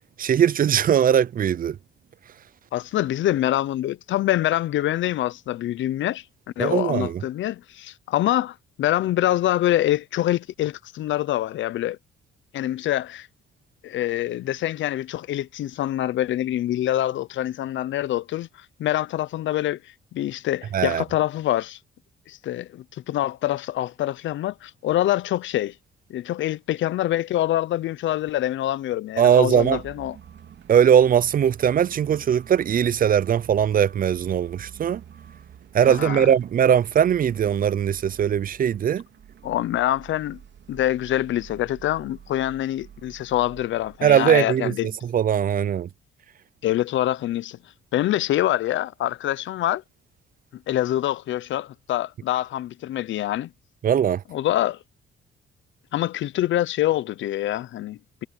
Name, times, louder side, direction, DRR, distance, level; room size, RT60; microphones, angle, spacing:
voice 1, 0.2-1.8 6.6-7.2 20.7-21.0 29.2-29.8 30.7-35.0 35.7-39.0 44.0-44.7 45.0-45.9 53.8-54.2, right 9 dB, 45° right, 0.5 m, -20 dB
voice 2, 2.7-6.2 6.6-12.0 12.5-13.3 13.8-18.5 18.8-19.8 20.1-21.8 22.3-25.7 26.1-30.2 35.8-36.3 39.4-40.4 40.7-44.9 46.6-47.6 47.9-49.8 50.7-53.5 54.3-54.8 55.9-58.2, left 13 dB, 70° left, 0.7 m, -25 dB
sound 1, 29.3-44.0, right 9 dB, 65° right, 3.6 m, -47 dB
cardioid pair, 90°, 20 cm